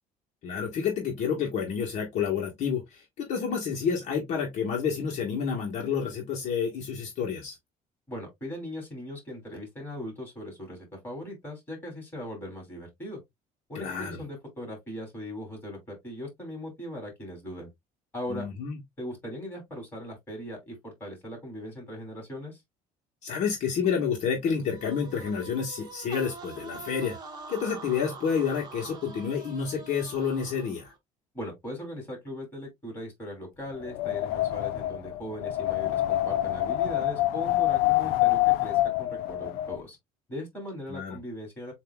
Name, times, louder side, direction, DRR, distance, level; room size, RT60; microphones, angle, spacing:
voice 1, 0.4-7.6 13.7-14.2 18.3-18.8 23.2-27.2 27.5-30.9 40.9-41.2, left 6 dB, 50° left, 1.4 m, -29 dB
voice 2, 8.1-13.2 13.7-17.7 18.1-18.5 19.0-22.6 31.3-40.0 40.3-41.7, left 1 dB, 15° left, 3.0 m, -39 dB
sound 1, 24.6-31.0, right 4 dB, 25° right, 1.1 m, -44 dB
Wind, 33.8-39.8, left 15 dB, 80° left, 0.5 m, -26 dB
7.5 x 2.7 x 2.3 m
cardioid pair, 170°, 15 cm